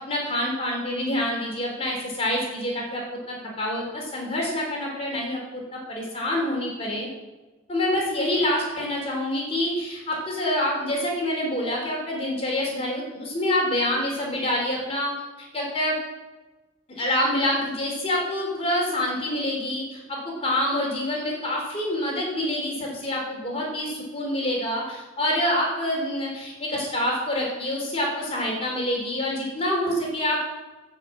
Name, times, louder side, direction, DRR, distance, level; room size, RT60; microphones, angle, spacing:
voice 1, 0.0-7.1 7.7-15.1 15.5-16.0 16.9-30.5, left 1 dB, 35° left, -2 dB, 3.4 m, -26 dB
15.5 x 5.5 x 7.4 m, 1.2 s
head